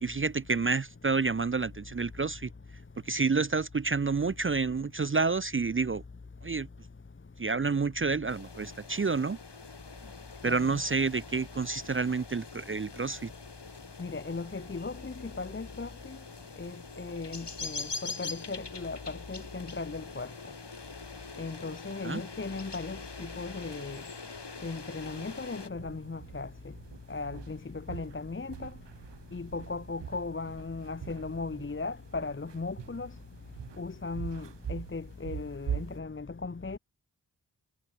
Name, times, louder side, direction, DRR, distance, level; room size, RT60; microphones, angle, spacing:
voice 1, 0.0-2.5 3.1-6.0 6.4-6.7 7.4-9.4 10.4-13.3 22.0-22.2, right 4 dB, 30° right, 0.5 m, -29 dB
sound 1, 8.3-25.7, left 4 dB, 80° left, 4.2 m, -44 dB
voice 2, 14.0-16.2 16.6-20.3 21.4-24.0 24.6-26.5 27.1-28.7 29.3-33.1 33.8-36.8, left 3 dB, 30° left, 0.8 m, -37 dB
sound 2, 25.1-36.0, right 8 dB, 85° right, 0.8 m, -43 dB
wide cardioid pair, 40°, 41 cm